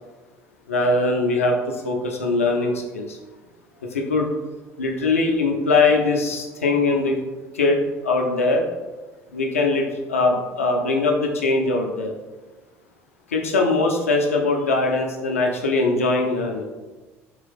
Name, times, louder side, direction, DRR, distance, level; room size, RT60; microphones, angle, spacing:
voice 1, 0.7-3.2 3.9-4.3 4.8-7.2 7.5-8.6 9.3-12.1 13.3-16.6, left 3 dB, 80° left, 2 dB, 0.3 m, -21 dB
3.6 x 2.9 x 3.3 m, 1.3 s
figure-of-eight pair, 60°, 7 cm